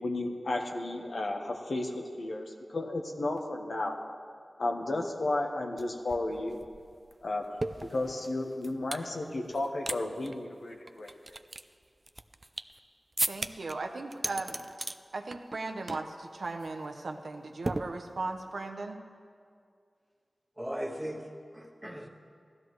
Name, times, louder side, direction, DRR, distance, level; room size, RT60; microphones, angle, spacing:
voice 1, 0.0-4.0 4.6-6.6 7.2-7.5 7.8-11.1, left 2 dB, 80° left, 1 dB, 1.2 m, -33 dB
sound 1, 5.8-5.9 6.1-9.1 9.5-10.0 10.2-10.3 10.9-12.8 13.2-13.7 14.1-15.0 15.3-15.6 15.9-16.1 16.4-16.7 17.6-18.4, right 2 dB, 40° right, 0.4 m, -36 dB
voice 2, 13.3-14.6 15.1-19.0, right 3 dB, 85° right, 4 dB, 0.9 m, -37 dB
voice 3, 20.6-22.1, equal, 5° right, 1 dB, 1.5 m, -38 dB
16.0 x 13.0 x 3.2 m, 2.2 s
cardioid pair, 45°, 0 cm